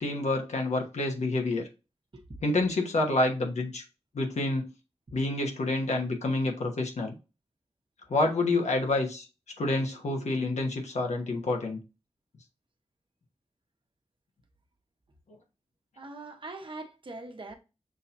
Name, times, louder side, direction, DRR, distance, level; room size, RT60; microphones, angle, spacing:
voice 1, 0.0-1.7 2.4-3.8 4.1-4.7 5.1-7.1 8.1-9.3 9.6-11.8, left 2 dB, 85° left, 1.2 m, -28 dB
voice 2, 16.0-17.5, right 2 dB, 50° right, 1.0 m, -42 dB
6.3 x 2.8 x 2.6 m
wide cardioid pair, 70°, 11 cm